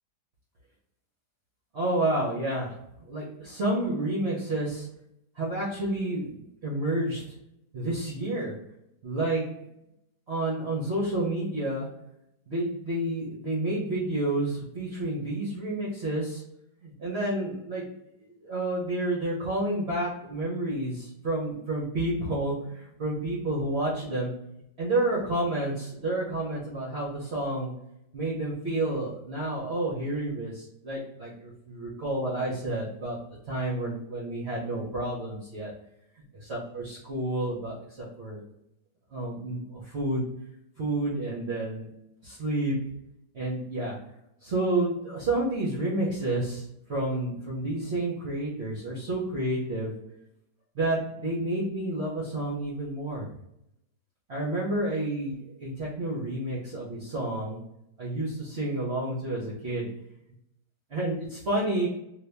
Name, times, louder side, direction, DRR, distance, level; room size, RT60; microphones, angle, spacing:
voice 1, 1.7-2.7 3.1-4.9 5.4-7.2 7.7-8.5 9.0-9.4 10.3-11.9 12.5-16.4 16.8-17.8 18.4-24.3 24.8-27.7 28.1-33.2 33.5-35.7 36.4-38.4 39.1-40.3 40.8-41.9 42.2-42.8 43.3-43.9 44.4-46.6 46.9-49.9 50.7-53.3 54.3-55.3 55.6-57.6 58.0-59.9 60.9-61.9, right 1 dB, 50° right, -5 dB, 0.9 m, -30 dB
2.7 x 2.7 x 3.3 m, 0.81 s
omnidirectional pair, 2.0 m